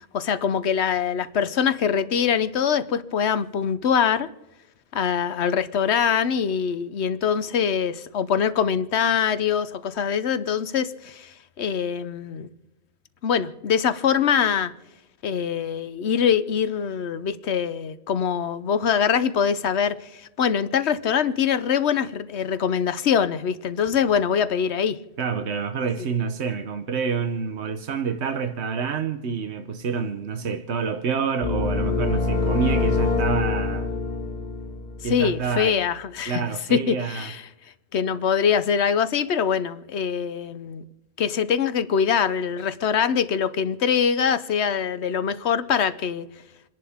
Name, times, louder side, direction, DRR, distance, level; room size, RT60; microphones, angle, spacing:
voice 1, 0.0-4.3 4.9-11.3 11.6-12.5 13.2-14.7 15.2-25.0 35.1-36.4 36.7-37.4 37.9-40.8 41.2-46.3, left 7 dB, 80° left, 1.1 m, -23 dB
voice 2, 25.2-34.0 35.0-35.8 36.3-37.3, right 6 dB, 85° right, 1.3 m, -28 dB
sound 1, 31.4-35.4, left 3 dB, 40° left, 1.9 m, -25 dB
28.5 x 11.0 x 3.6 m
omnidirectional pair, 1.1 m